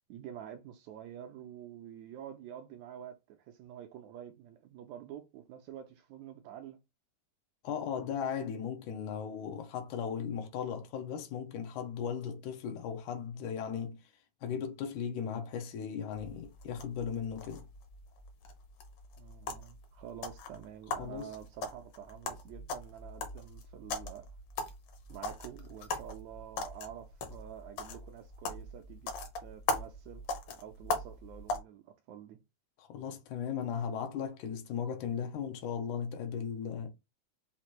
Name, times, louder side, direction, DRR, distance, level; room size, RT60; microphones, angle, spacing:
voice 1, 0.1-6.8 19.2-24.3 25.1-29.1 29.4-32.4, right 10 dB, 80° right, 1.7 m, -48 dB
voice 2, 7.6-14.0 14.4-17.7 21.0-21.3 32.8-36.9, left 7 dB, 85° left, 2.2 m, -37 dB
sound 1, 16.1-31.6, left 3 dB, 65° left, 1.5 m, -40 dB
5.7 x 2.6 x 3.0 m
omnidirectional pair, 3.5 m